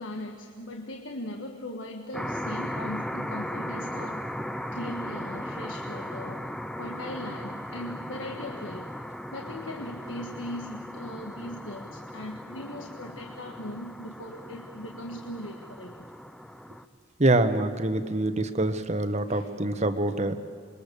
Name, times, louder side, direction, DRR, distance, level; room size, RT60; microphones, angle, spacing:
voice 1, 0.0-4.3 4.7-8.9 9.3-16.1 19.3-19.5, left 1 dB, 80° left, 3 dB, 1.5 m, -39 dB
sound 1, 2.1-16.8, equal, 5° left, 0.6 m, -37 dB
voice 2, 17.2-20.4, right 2 dB, 35° right, 9 dB, 1.2 m, -25 dB
26.5 x 22.5 x 6.9 m, 2.1 s
head